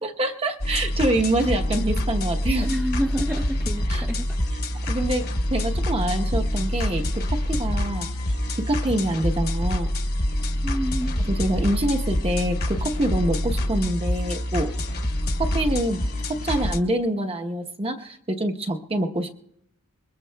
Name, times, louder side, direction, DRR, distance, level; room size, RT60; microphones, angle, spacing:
voice 1, 0.0-2.7 3.9-4.1 4.9-5.2 5.5-7.0 7.3-8.1 8.7-9.9 11.2-14.7 15.4-16.0 16.3-19.3, right 1 dB, 25° right, 3 dB, 1.0 m, -25 dB
sound 1, 0.6-16.8, left 1 dB, 50° left, 1.2 m, -26 dB
voice 2, 2.6-4.3 10.6-11.2, equal, 10° right, 2 dB, 0.6 m, -28 dB
24.0 x 21.5 x 2.3 m, 0.78 s
head